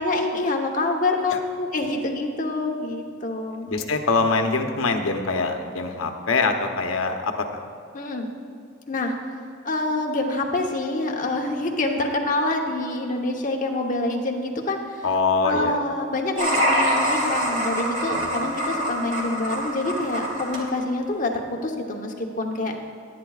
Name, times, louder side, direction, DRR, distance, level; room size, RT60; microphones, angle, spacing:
voice 1, 0.0-3.7 7.9-8.3 8.9-9.1 9.6-15.0 15.5-21.3 21.6-22.8, left 2 dB, 40° left, 2 dB, 1.0 m, -26 dB
voice 2, 3.7-7.5 15.0-15.8 18.1-18.4, left 4 dB, 85° left, 5 dB, 0.9 m, -24 dB
sound 1, 16.4-20.6, equal, 40° right, 1.9 m, -25 dB
18.5 x 9.5 x 2.4 m, 2.4 s
head